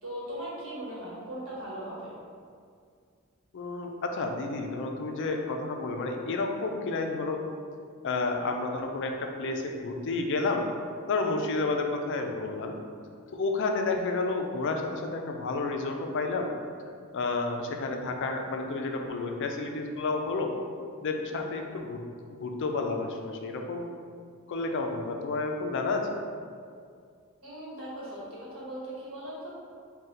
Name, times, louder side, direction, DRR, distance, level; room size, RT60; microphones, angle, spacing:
voice 1, 0.0-2.1 27.4-28.2 28.5-29.5, right 1 dB, 70° right, -7 dB, 1.2 m, -38 dB
voice 2, 3.5-7.4 8.0-10.6 11.1-12.7 13.3-16.5 17.1-20.5 21.0-22.0 22.3-23.9 24.5-26.1, left 3 dB, 55° left, 3 dB, 0.4 m, -30 dB
4.1 x 2.2 x 3.8 m, 2.2 s
head